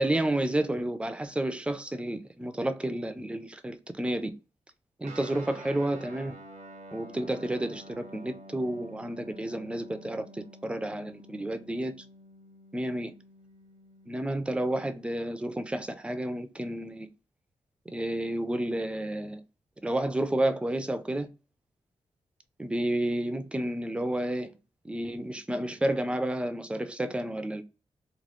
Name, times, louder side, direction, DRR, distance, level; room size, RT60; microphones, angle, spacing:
voice 1, 0.0-4.3 5.0-6.4 6.9-11.9 12.7-13.1 14.1-17.1 17.9-19.4 19.8-21.3 22.6-24.5 24.8-27.6, right 1 dB, 10° right, 0.3 m, -31 dB
Guitar, 5.0-14.9, right 1 dB, 75° right, 0.6 m, -49 dB
2.9 x 2.2 x 3.0 m
wide cardioid pair, 150°, 12 cm